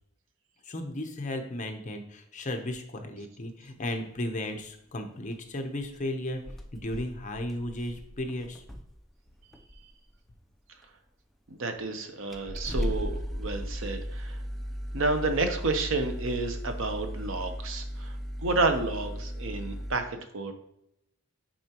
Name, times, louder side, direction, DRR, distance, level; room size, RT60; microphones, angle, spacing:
voice 1, 0.6-6.4 6.7-8.6, left 1 dB, 40° left, 5 dB, 0.8 m, -35 dB
sound 1, 5.1-5.3 5.8-6.0 6.3-9.0 9.5-9.9 10.8-10.9 11.8-11.9 12.3-20.0, equal, ahead, 0.5 m, -36 dB
voice 2, 11.5-14.4 14.9-18.2 18.4-20.5, right 3 dB, 70° right, 7 dB, 0.8 m, -30 dB
9.1 x 4.3 x 2.9 m, 0.78 s
head